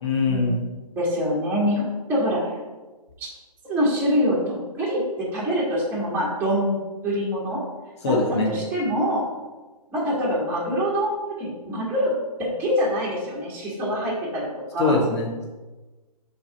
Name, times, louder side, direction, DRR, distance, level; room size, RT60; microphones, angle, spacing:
voice 1, 0.0-0.6 8.0-8.5 14.8-15.4, left 3 dB, 45° left, -1 dB, 1.5 m, -22 dB
voice 2, 0.9-1.8 2.1-2.5 3.2-3.3 3.6-5.0 5.3-6.8 7.0-7.6 8.1-8.2 8.5-9.2 9.9-12.1 12.4-14.9, equal, 10° right, -7 dB, 1.6 m, -24 dB
6.9 x 3.5 x 5.3 m, 1.2 s
hypercardioid pair, 150°, 20 cm